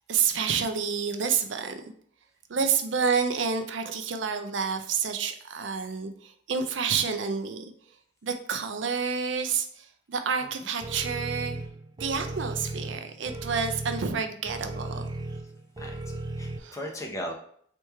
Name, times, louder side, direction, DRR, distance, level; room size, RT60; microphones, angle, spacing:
voice 1, 0.1-1.8 2.5-7.7 8.2-11.6 12.0-15.1 16.6-16.8, right 6 dB, 75° right, 7 dB, 0.5 m, -29 dB
sound 1, 10.8-16.6, right 2 dB, 20° right, 0.3 m, -36 dB
voice 2, 15.8-17.3, equal, 15° left, 1 dB, 0.7 m, -37 dB
3.4 x 3.0 x 4.5 m, 0.62 s
head